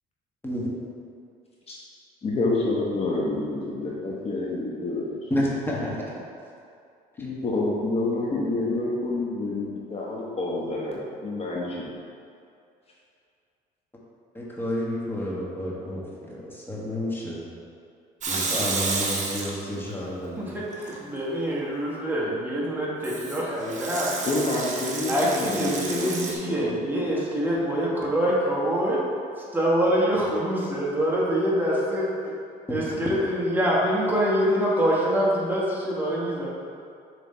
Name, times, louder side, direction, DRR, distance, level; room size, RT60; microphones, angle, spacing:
voice 1, 2.2-5.3 7.2-12.0 24.3-27.1, left 2 dB, 35° left, -4 dB, 1.0 m, -28 dB
voice 2, 5.3-6.1 14.3-17.4 18.3-20.6 32.7-32.8, equal, 15° left, -5 dB, 1.4 m, -30 dB
Water tap faucet / Sink (filling or washing) / Liquid, 18.2-19.9 20.3-21.0 23.0-26.3, right 3 dB, 45° right, 1.0 m, -31 dB
voice 3, 20.4-24.1 25.1-29.0 29.5-32.1 32.7-36.5, equal, 10° right, -6 dB, 1.3 m, -25 dB
7.1 x 3.3 x 4.3 m, 2.5 s
cardioid pair, 110°, 17 cm